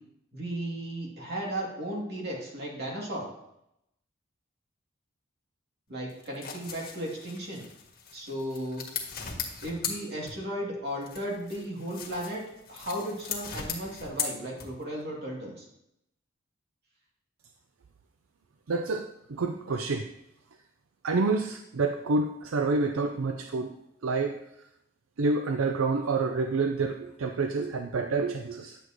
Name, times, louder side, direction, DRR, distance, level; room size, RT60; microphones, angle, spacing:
voice 1, 0.3-3.3 5.9-7.7 8.1-8.8 9.6-12.4 12.7-15.6, right 1 dB, 55° right, -3 dB, 2.7 m, -35 dB
sound 1, 6.1-10.7 11.0-15.0, left 6 dB, 45° left, 1.7 m, -38 dB
voice 2, 18.7-20.1 21.0-23.7 24.0-24.4 25.2-28.8, right 3 dB, 80° right, 5 dB, 0.5 m, -28 dB
10.5 x 7.9 x 3.1 m, 0.81 s
head